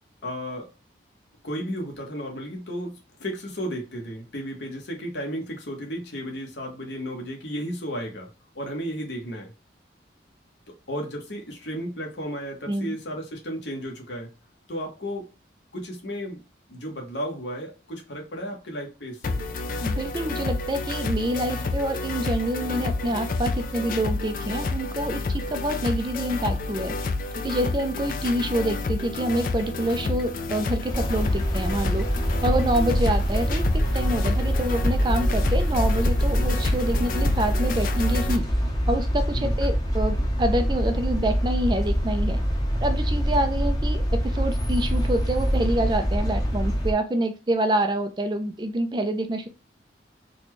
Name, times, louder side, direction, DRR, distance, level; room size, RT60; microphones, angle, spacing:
voice 1, 0.2-0.7 1.4-8.3 8.5-9.5 10.7-14.3 14.7-15.3 15.7-16.4 16.7-19.4 32.4-32.8 39.3-39.6, equal, 70° left, 1.1 m, -34 dB
voice 2, 12.7-13.0 19.8-26.9 27.4-32.1 32.4-38.5 38.9-42.4 42.8-49.5, right 1 dB, 25° right, 0.4 m, -27 dB
sound 1, 19.2-38.4, left 3 dB, 45° left, 0.4 m, -30 dB
sound 2, 30.9-46.9, equal, 20° left, 0.7 m, -24 dB
4.1 x 2.2 x 3.0 m
head